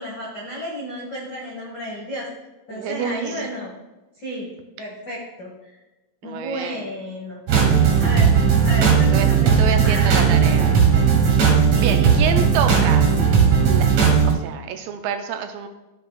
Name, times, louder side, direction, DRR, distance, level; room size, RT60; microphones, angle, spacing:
voice 1, 0.0-2.3 2.7-3.7 4.2-4.5 4.8-5.7 6.2-7.4 8.0-8.3 8.6-10.8 11.6-12.2, equal, 70° left, -4 dB, 0.9 m, -32 dB
voice 2, 2.7-3.5 6.2-6.8 9.1-9.3 9.6-10.8 11.6-13.1 13.7-15.7, right 7 dB, 80° right, 6 dB, 2.1 m, -28 dB
sound 1, 7.5-14.3, right 6 dB, 60° right, 1.9 m, -16 dB
12.5 x 7.4 x 2.3 m, 1.1 s
omnidirectional pair, 4.3 m